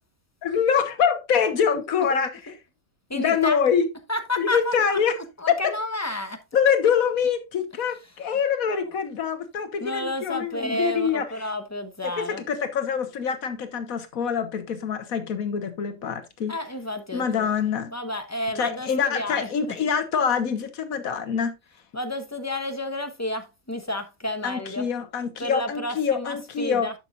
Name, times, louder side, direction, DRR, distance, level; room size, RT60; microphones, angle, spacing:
voice 1, 0.4-2.6 3.1-3.9 4.4-5.2 5.5-5.7 6.5-11.3 12.0-16.6 17.1-17.9 18.5-21.5 24.4-26.9, left 7 dB, 85° left, 1.6 m, -25 dB
voice 2, 3.1-3.6 4.1-5.0 5.4-6.4 8.7-8.9 9.8-12.4 16.5-17.5 17.9-19.7 21.9-24.9 25.4-26.9, left 1 dB, 15° left, 1.0 m, -31 dB
11.5 x 7.1 x 2.5 m
omnidirectional pair, 1.4 m